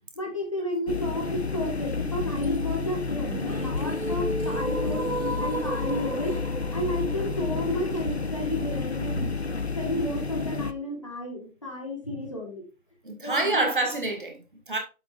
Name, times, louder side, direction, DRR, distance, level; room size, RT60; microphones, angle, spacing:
voice 1, 0.2-5.0 5.4-6.4 6.7-9.3 9.8-12.6 13.2-13.7, left 1 dB, 20° left, 1.7 m, -32 dB
sound 1, 0.9-10.7, left 4 dB, 50° left, 0.8 m, -30 dB
sound 2, 3.2-9.2, right 1 dB, 70° right, 2.8 m, -34 dB
voice 2, 13.0-14.8, right 2 dB, 35° right, 2.1 m, -28 dB
9.8 x 7.7 x 2.5 m
figure-of-eight pair, 175°, 43 cm